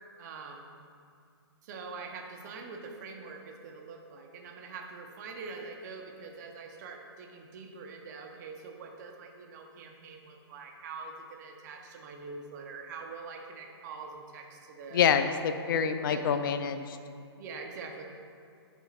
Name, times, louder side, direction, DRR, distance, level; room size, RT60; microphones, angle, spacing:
voice 1, 0.2-0.7 1.6-15.0 15.7-16.4 17.4-18.0, right 4 dB, 40° right, 2 dB, 0.9 m, -44 dB
voice 2, 14.9-17.0, left 7 dB, 55° left, 9 dB, 0.4 m, -27 dB
10.5 x 3.7 x 4.1 m, 2.3 s
hypercardioid pair, 130°, 14 cm